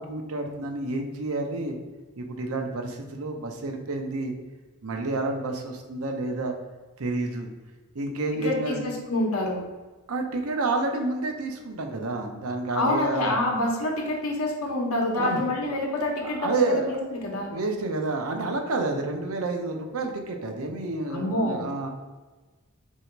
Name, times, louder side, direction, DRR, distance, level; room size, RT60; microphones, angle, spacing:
voice 1, 0.0-1.8 2.2-4.3 4.8-6.6 7.0-7.5 7.9-8.8 10.1-13.3 15.1-15.4 16.2-21.9, right 2 dB, 75° right, 4 dB, 0.6 m, -29 dB
voice 2, 8.4-9.6 12.7-17.5 21.1-21.6, left 1 dB, 80° left, 0 dB, 0.9 m, -27 dB
3.9 x 2.8 x 4.4 m, 1.3 s
head